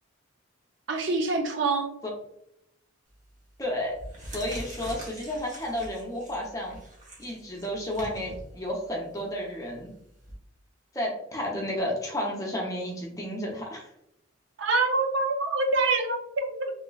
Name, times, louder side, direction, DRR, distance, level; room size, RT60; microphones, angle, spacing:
voice 1, 0.9-1.9 14.6-16.7, right 3 dB, 65° right, 4 dB, 0.5 m, -26 dB
sound 1, 3.1-3.4 3.8-10.3, right 1 dB, 35° right, 0.9 m, -44 dB
voice 2, 3.6-3.9 4.3-6.8 7.2-9.9 10.9-13.9, left 1 dB, 15° left, -1 dB, 0.6 m, -32 dB
3.1 x 2.9 x 2.3 m, 0.77 s
head